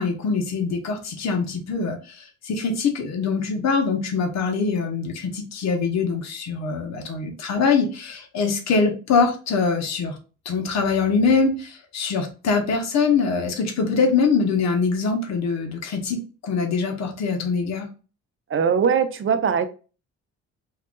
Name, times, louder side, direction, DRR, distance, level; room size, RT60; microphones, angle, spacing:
voice 1, 0.0-10.1 10.4-17.9, left 4 dB, 60° left, 1.1 m, -23 dB
voice 2, 18.5-19.7, right 6 dB, 45° right, 0.7 m, -20 dB
5.5 x 2.5 x 2.2 m
cardioid pair, 90°, 30 cm